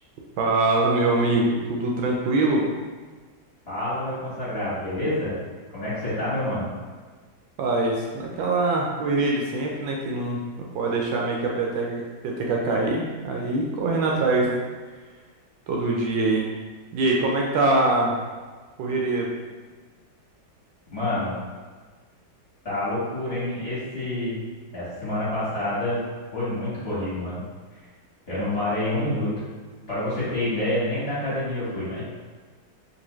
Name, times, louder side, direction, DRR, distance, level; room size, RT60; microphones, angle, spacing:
voice 1, 0.4-2.7 7.6-14.5 15.7-16.5 16.9-18.2 18.8-19.3, right 2 dB, 75° right, -2 dB, 1.3 m, -23 dB
voice 2, 3.7-5.4 5.7-6.7 20.9-21.4 22.6-24.4 24.7-26.0 26.3-27.4 28.3-29.3 29.9-32.0, left 1 dB, 35° left, -12 dB, 1.4 m, -27 dB
3.8 x 2.6 x 3.0 m, 1.4 s
omnidirectional pair, 2.2 m